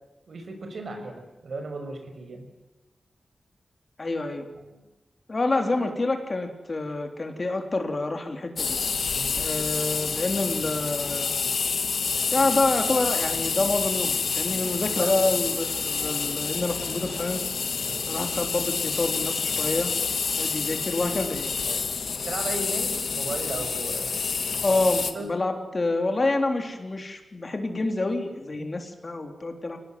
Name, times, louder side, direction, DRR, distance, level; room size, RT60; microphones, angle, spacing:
voice 1, 0.3-2.5 4.6-4.8 9.1-9.3 14.5-14.6 15.0-15.1 17.9-18.1 21.7-21.8 22.3-24.1 24.7-24.8 25.1-25.3 28.5-28.7, right 3 dB, 70° right, 5 dB, 6.3 m, -36 dB
voice 2, 4.0-4.4 5.3-8.8 9.4-11.4 12.3-17.5 18.1-19.9 20.4-21.5 24.6-29.8, left 2 dB, 40° left, 5 dB, 3.6 m, -27 dB
sound 1, 8.6-25.1, left 5 dB, 75° left, 2.1 m, -28 dB
26.5 x 19.0 x 9.4 m, 1.0 s
wide cardioid pair, 105°, 0 cm